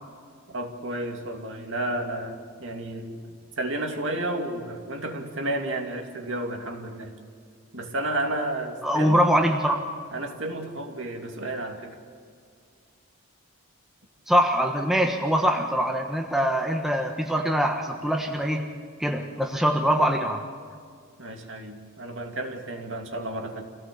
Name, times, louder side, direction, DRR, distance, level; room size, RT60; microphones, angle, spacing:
voice 1, 0.5-7.1 7.7-9.2 10.1-12.0 20.7-20.8 21.2-23.6, right 1 dB, 55° right, 3 dB, 2.6 m, -32 dB
voice 2, 8.8-9.8 14.3-18.7 19.0-20.4, equal, ahead, 2 dB, 1.3 m, -23 dB
27.0 x 17.0 x 7.1 m, 2.2 s
head